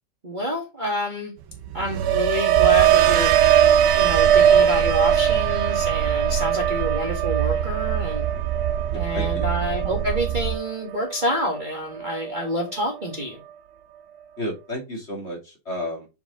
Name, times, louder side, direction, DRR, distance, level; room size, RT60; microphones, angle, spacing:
voice 1, 0.2-1.3 1.7-3.3 4.0-8.2 8.9-13.4, equal, 25° right, 1.8 m, -28 dB
sound 1, 1.5-11.6 12.0-12.4, right 10 dB, 85° right, 1.6 m, -21 dB
sound 2, 2.6-10.6, right 10 dB, 65° right, 1.2 m, -27 dB
voice 2, 8.9-9.5 14.4-16.1, left 1 dB, 35° left, 2.7 m, -32 dB
7.3 x 4.7 x 3.8 m
omnidirectional pair, 2.1 m